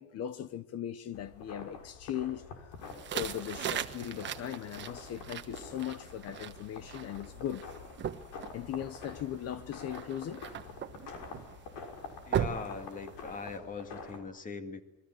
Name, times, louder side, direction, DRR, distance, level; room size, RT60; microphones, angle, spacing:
voice 1, 0.0-2.5 3.1-7.7 8.5-10.4, left 10 dB, 40° left, 0.9 m, -38 dB
sound 1, 1.1-14.2, left 4 dB, 75° left, 6.1 m, -47 dB
sound 2, 2.8-13.6, right 9 dB, 30° right, 1.3 m, -40 dB
voice 2, 12.2-14.8, left 4 dB, 20° left, 2.0 m, -41 dB
28.0 x 22.0 x 7.8 m
cardioid pair, 170°, 37 cm